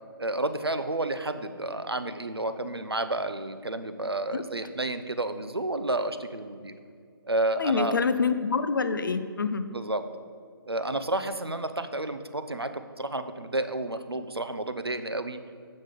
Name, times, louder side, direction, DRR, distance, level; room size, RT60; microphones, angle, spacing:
voice 1, 0.2-6.7 7.2-8.0 9.7-10.0 10.7-15.4, right 2 dB, 90° right, 9 dB, 0.7 m, -31 dB
voice 2, 7.6-9.6, left 5 dB, 60° left, 11 dB, 0.6 m, -26 dB
7.2 x 6.4 x 4.9 m, 2.1 s
figure-of-eight pair, 140°, 13 cm